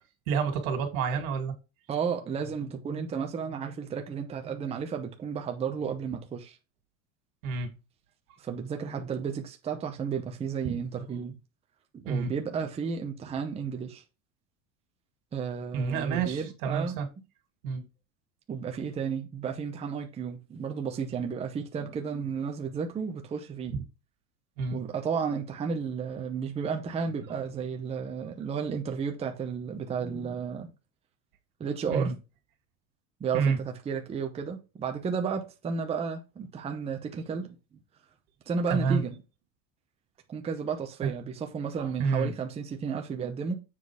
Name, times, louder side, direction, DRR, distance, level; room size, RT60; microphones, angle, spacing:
voice 1, 0.3-1.5 7.4-7.7 10.6-10.8 12.1-12.3 15.7-17.1 17.6-17.9 24.6-24.8 31.9-32.1 33.3-33.6 38.7-39.0 41.0-41.1 41.8-42.3, right 5 dB, 85° right, 2.3 m, -29 dB
voice 2, 1.9-6.6 8.4-11.4 11.9-14.0 15.3-17.0 18.5-23.8 24.7-30.7 31.6-32.2 33.2-37.8 38.5-39.2 40.3-43.5, right 6 dB, 15° right, 0.7 m, -33 dB
7.5 x 4.1 x 4.7 m
cardioid pair, 160°, 41 cm